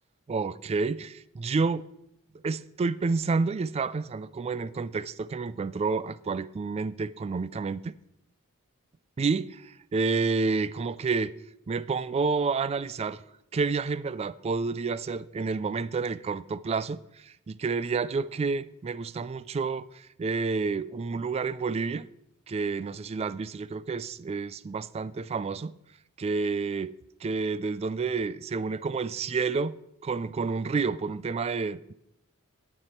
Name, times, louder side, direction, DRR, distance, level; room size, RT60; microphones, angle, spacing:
voice 1, 0.3-1.9 2.4-7.9 9.2-11.3 11.7-13.2 13.5-22.1 22.5-25.7 26.2-26.9 27.2-31.9, right 4 dB, 30° right, 0.3 m, -29 dB
9.8 x 9.6 x 4.4 m
head